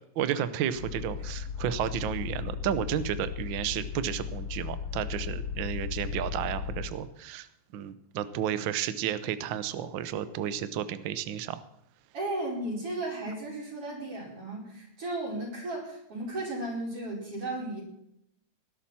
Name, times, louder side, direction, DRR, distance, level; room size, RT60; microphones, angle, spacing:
voice 1, 0.2-7.5 7.7-11.6, right 10 dB, 90° right, 12 dB, 1.0 m, -32 dB
sound 1, 0.7-6.9, left 6 dB, 60° left, 3.0 m, -36 dB
voice 2, 12.1-17.8, right 2 dB, 50° right, -2 dB, 5.9 m, -35 dB
19.0 x 11.5 x 4.3 m, 0.78 s
omnidirectional pair, 3.3 m